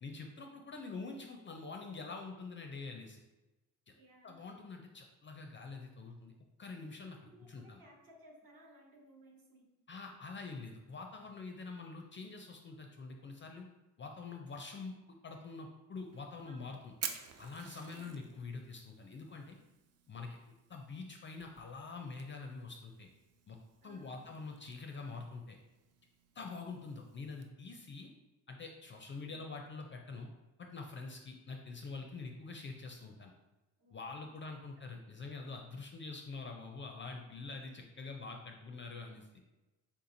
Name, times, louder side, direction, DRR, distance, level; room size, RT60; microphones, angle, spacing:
voice 1, 0.0-3.2 4.2-6.3 6.6-7.2 7.5-7.8 9.9-13.7 14.0-15.0 15.2-16.9 17.4-19.6 20.1-20.4 20.7-23.1 23.5-23.6 23.8-25.6 26.4-28.1 28.5-30.3 30.6-33.3 33.9-39.3, left 4 dB, 30° left, 3 dB, 0.4 m, -45 dB
voice 2, 3.9-4.5 7.2-9.7 16.5-16.8 17.8-18.3 23.8-24.4 26.6-26.8 33.8-34.2, right 1 dB, 55° right, -2 dB, 1.1 m, -61 dB
Fire, 16.0-27.5, right 7 dB, 40° right, 0.4 m, -51 dB
3.5 x 2.8 x 2.6 m, 1.1 s
supercardioid pair, 60°, 41 cm